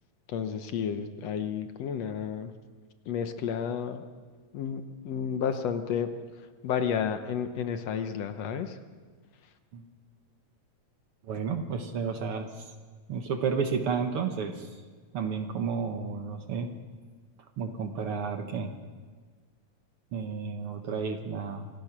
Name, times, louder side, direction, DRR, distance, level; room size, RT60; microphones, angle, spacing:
voice 1, 0.3-2.5 3.1-4.1 4.5-6.1 6.6-8.8, left 7 dB, 70° left, 8 dB, 2.0 m, -31 dB
voice 2, 11.2-12.6 13.1-14.7 15.1-16.7 17.6-18.7 20.1-21.7, right 5 dB, 55° right, 6 dB, 1.9 m, -31 dB
25.5 x 17.5 x 6.0 m, 1.5 s
omnidirectional pair, 3.3 m